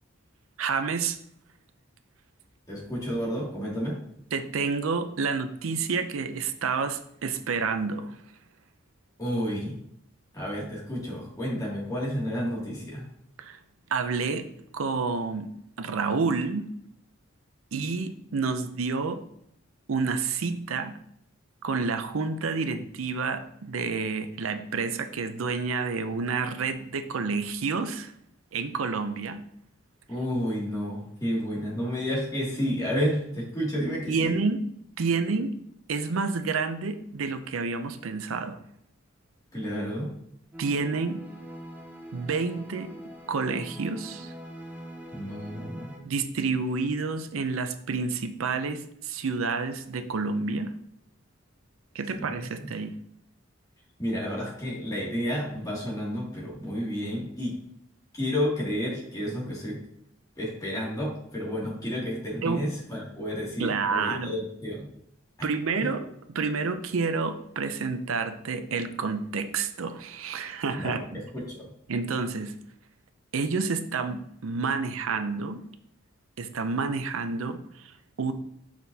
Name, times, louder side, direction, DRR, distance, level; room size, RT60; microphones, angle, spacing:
voice 1, 0.6-1.2 4.3-8.2 13.4-13.6 13.9-14.5 14.7-15.5 15.8-16.7 17.7-19.2 19.9-20.9 21.6-28.1 28.5-29.4 34.1-34.6 35.0-35.5 35.9-38.6 40.6-41.2 42.1-42.9 43.3-44.3 46.0-50.7 51.9-52.9 62.4-62.6 63.6-64.3 65.4-66.1 66.3-71.2 71.9-72.5 73.3-75.6 76.4-78.3, right 4 dB, 85° right, 9 dB, 0.5 m, -29 dB
voice 2, 2.7-4.0 9.2-9.8 10.3-13.1 30.1-34.3 39.5-40.1 45.1-46.0 52.1-52.7 54.0-57.5 58.1-59.8 60.4-64.9 65.4-65.5 65.8-65.9 70.7-71.7, equal, 20° left, -5 dB, 2.4 m, -31 dB
sound 1, 40.5-46.0, equal, 10° right, 0.8 m, -43 dB
7.2 x 5.9 x 2.8 m, 0.73 s
head